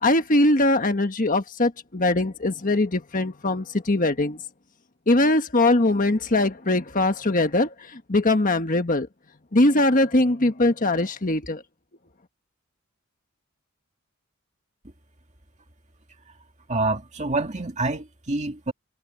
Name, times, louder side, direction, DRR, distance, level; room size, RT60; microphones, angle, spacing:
voice 1, 0.0-4.4 5.1-9.1 9.5-11.6, left 2 dB, 40° left, 1.4 m, -21 dB
voice 2, 16.7-18.7, right 2 dB, 35° right, 2.2 m, -27 dB
head